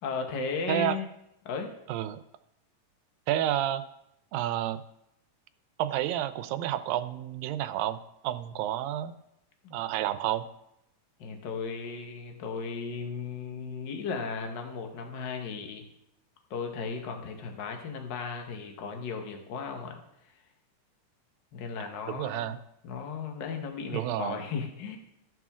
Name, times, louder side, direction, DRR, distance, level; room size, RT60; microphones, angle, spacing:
voice 1, 0.0-1.1 1.4-1.7 11.2-15.8 16.5-20.0 21.5-22.5 22.8-25.0, left 5 dB, 80° left, 4 dB, 1.0 m, -35 dB
voice 2, 1.9-2.2 3.3-3.8 4.3-4.8 5.8-9.1 9.7-10.5 22.1-22.6 23.9-24.4, right 12 dB, 85° right, 11 dB, 2.3 m, -30 dB
16.0 x 6.2 x 3.6 m, 0.82 s
omnidirectional pair, 4.0 m